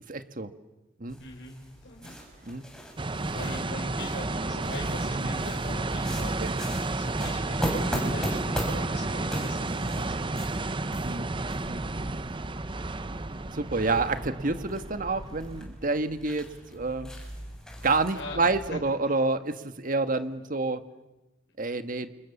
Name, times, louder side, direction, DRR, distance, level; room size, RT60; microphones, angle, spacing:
voice 1, 0.1-0.5 1.0-1.2 2.4-2.6 5.2-5.3 6.4-6.5 11.0-11.3 11.6-11.8 13.5-17.1 17.8-20.8 21.6-22.1, right 3 dB, 50° right, 9 dB, 1.7 m, -28 dB
sound 1, 1.1-18.7, equal, 5° left, 7.2 m, -39 dB
voice 2, 1.2-2.2 3.3-6.4 6.9-10.1 18.1-18.8, left 2 dB, 70° left, 0 dB, 4.4 m, -41 dB
sound 2, 3.0-15.7, right 2 dB, 25° right, 0.9 m, -31 dB
28.5 x 28.5 x 7.2 m, 1.0 s
head